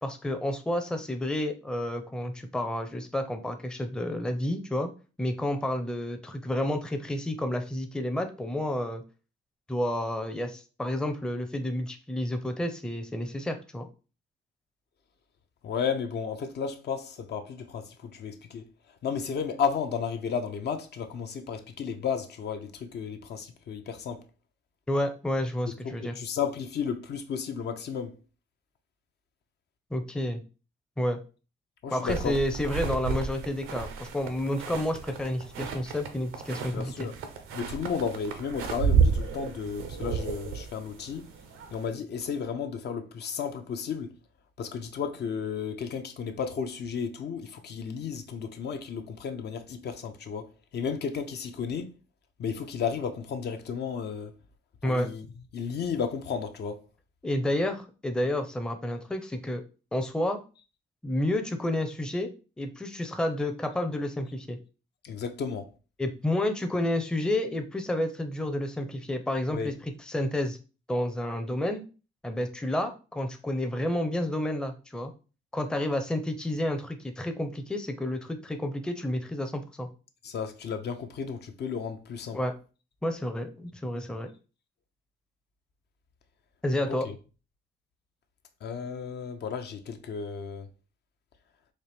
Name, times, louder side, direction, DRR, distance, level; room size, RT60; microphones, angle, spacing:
voice 1, 0.0-4.9 5.2-9.0 9.7-13.9 24.9-26.1 29.9-30.4 31.0-31.2 31.9-37.1 54.8-55.1 57.2-59.6 59.9-60.4 61.0-62.3 62.6-64.6 66.0-69.7 70.1-70.6 70.9-71.8 72.2-75.1 75.5-79.9 82.3-82.5 83.0-84.3 86.6-87.1, left 1 dB, 5° left, 0.5 m, -30 dB
voice 2, 15.6-18.7 19.0-24.2 26.0-28.1 31.8-32.4 36.7-37.1 37.5-41.3 41.7-44.1 44.6-51.9 52.4-54.3 54.8-55.3 55.5-56.8 65.0-65.7 69.5-69.7 80.2-82.4 86.9-87.2 88.6-90.7, left 6 dB, 55° left, 0.6 m, -33 dB
sound 1, 32.1-41.9, right 6 dB, 85° right, 0.7 m, -31 dB
4.2 x 2.5 x 3.4 m
cardioid pair, 90°, 20 cm